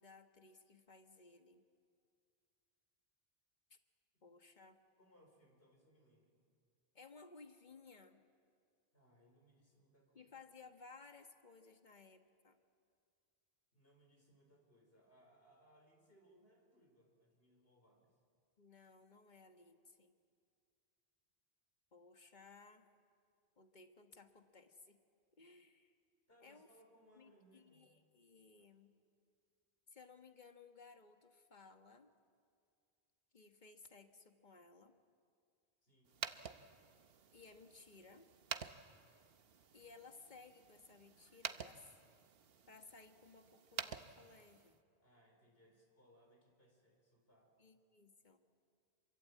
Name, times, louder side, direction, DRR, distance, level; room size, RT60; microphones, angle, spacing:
voice 1, 0.0-1.6 3.7-3.8 4.2-4.8 6.9-8.2 10.1-12.6 18.6-20.1 21.9-22.8 23.6-25.0 25.4-25.9 26.4-26.7 27.1-28.9 29.9-32.1 33.3-34.9 37.3-38.3 39.7-41.9 42.6-44.8 47.6-48.4, left 4 dB, 50° left, 6 dB, 1.6 m, -60 dB
voice 2, 5.0-6.5 8.9-10.3 13.7-18.2 26.3-27.9 35.8-36.2 45.0-47.5, equal, 70° left, 1 dB, 5.0 m, -69 dB
sound 1, 36.1-44.8, right 7 dB, 70° right, 1.1 m, -50 dB
27.0 x 23.0 x 8.5 m, 2.3 s
omnidirectional pair, 1.0 m